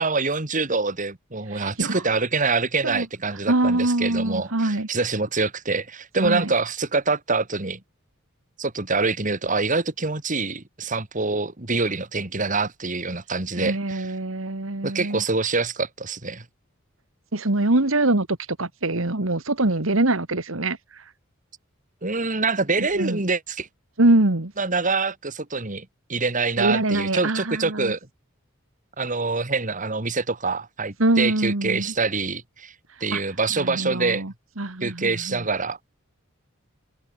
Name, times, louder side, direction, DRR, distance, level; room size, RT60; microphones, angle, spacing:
voice 1, 0.0-7.8 8.6-14.1 14.8-16.4 22.0-23.7 24.6-28.0 29.0-32.7 33.0-34.2 34.8-35.8, right 3 dB, 40° right, 2.5 m, -25 dB
voice 2, 1.5-2.0 2.8-3.1 3.5-4.9 6.2-6.5 13.6-15.2 17.3-18.3 18.6-21.0 22.8-23.2 24.0-24.5 26.6-27.9 31.0-31.9 33.1-33.2 33.5-35.4, right 2 dB, 80° right, 2.1 m, -23 dB
head